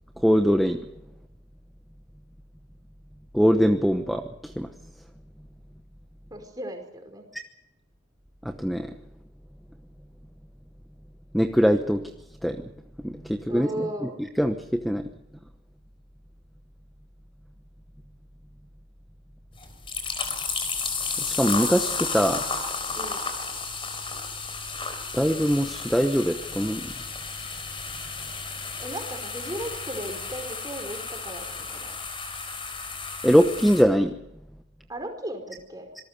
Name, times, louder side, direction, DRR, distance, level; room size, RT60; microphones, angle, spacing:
voice 1, 0.2-0.9 3.3-4.7 8.4-9.0 11.3-12.1 12.4-12.6 13.0-14.1 14.4-15.1 21.2-22.4 25.1-26.9 33.2-34.1, equal, ahead, 4 dB, 1.0 m, -22 dB
voice 2, 6.3-7.2 13.5-14.2 22.9-23.3 28.8-32.0 34.9-35.9, right 1 dB, 20° right, 4 dB, 5.0 m, -36 dB
sound 1, 19.6-33.8, left 4 dB, 30° left, 4.1 m, -33 dB
26.5 x 19.5 x 6.8 m, 0.83 s
head